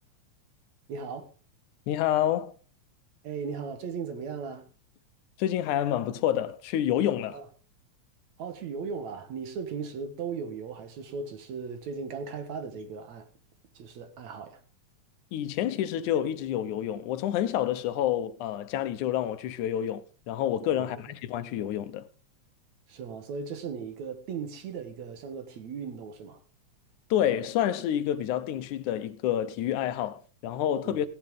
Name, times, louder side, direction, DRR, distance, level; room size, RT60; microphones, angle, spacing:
voice 1, 0.9-1.3 3.2-4.7 7.3-7.5 8.4-13.3 13.7-14.6 20.8-21.0 22.9-26.4 30.8-31.0, right 5 dB, 70° right, 2.8 m, -37 dB
voice 2, 1.9-2.5 5.4-7.4 15.3-22.1 27.1-31.1, left 11 dB, 85° left, 2.3 m, -28 dB
16.0 x 10.5 x 3.8 m
omnidirectional pair, 3.4 m